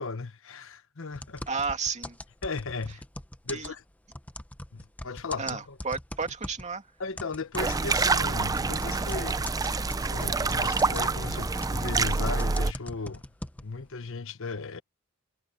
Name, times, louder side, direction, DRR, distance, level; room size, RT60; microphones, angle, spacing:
voice 1, 0.0-1.4 2.4-3.0 3.4-3.8 4.7-5.8 7.0-9.4 10.1-13.2 13.6-14.8, left 4 dB, 65° left, 1.1 m, -36 dB
sound 1, 1.1-6.7 7.2-13.9, left 1 dB, 5° left, 0.8 m, -41 dB
voice 2, 1.5-2.2 3.5-3.7 5.4-6.9, right 5 dB, 35° right, 2.5 m, -32 dB
sound 2, 7.6-12.7, right 3 dB, 15° right, 0.4 m, -27 dB
head